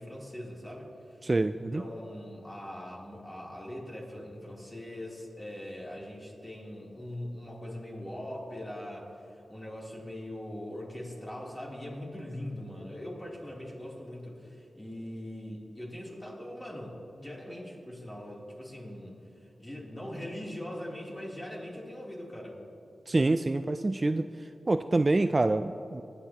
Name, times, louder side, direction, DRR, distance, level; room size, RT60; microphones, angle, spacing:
voice 1, 0.0-1.2 1.5-22.6, left 1 dB, 20° left, -4 dB, 3.1 m, -41 dB
voice 2, 1.2-1.8 23.1-24.2 24.7-26.0, right 2 dB, 35° right, 10 dB, 0.3 m, -26 dB
22.0 x 9.9 x 2.9 m, 2.8 s
cardioid pair, 70°, 0 cm